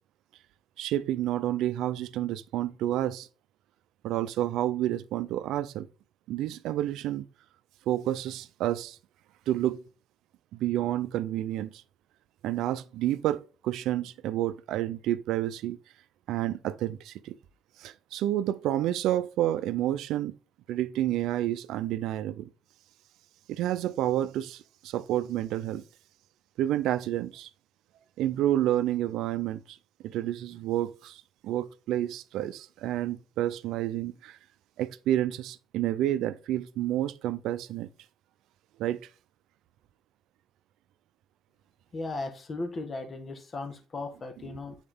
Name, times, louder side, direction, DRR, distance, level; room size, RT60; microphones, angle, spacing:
voice 1, 0.8-3.3 4.0-5.9 6.3-7.3 7.9-9.0 9.5-9.8 10.5-11.8 12.4-15.8 16.3-17.4 17.8-20.3 20.7-22.5 23.5-25.8 26.6-27.5 28.2-29.8 30.0-34.4 34.8-37.9 38.8-39.0, right 13 dB, 90° right, 0.5 m, -29 dB
voice 2, 41.9-44.7, left 2 dB, 40° left, 1.5 m, -36 dB
9.1 x 4.3 x 3.6 m
cardioid pair, 90°, 0 cm